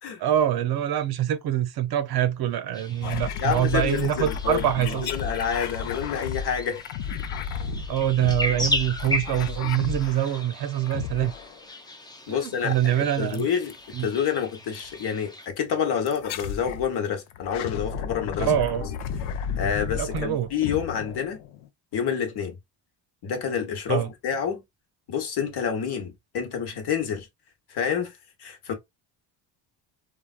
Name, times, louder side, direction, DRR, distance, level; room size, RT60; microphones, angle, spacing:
voice 1, 0.2-5.1 7.9-11.3 12.3-13.5 13.9-14.1 18.4-18.9 19.9-20.5 23.9-24.1, right 11 dB, 50° right, 0.6 m, -25 dB
sound 1, 2.7-15.5, left 1 dB, 10° left, 0.5 m, -36 dB
sound 2, 3.0-10.5 10.9-11.6 13.3-13.8 14.7-14.9 16.1-16.9 17.3-21.7, left 7 dB, 80° left, 0.7 m, -33 dB
voice 2, 3.4-6.8 12.3-13.7 14.0-18.5 19.6-21.4 21.9-22.6 23.2-24.6 25.1-27.3 27.7-28.7, left 7 dB, 55° left, 1.1 m, -28 dB
3.3 x 2.3 x 2.3 m
cardioid pair, 115°, 48 cm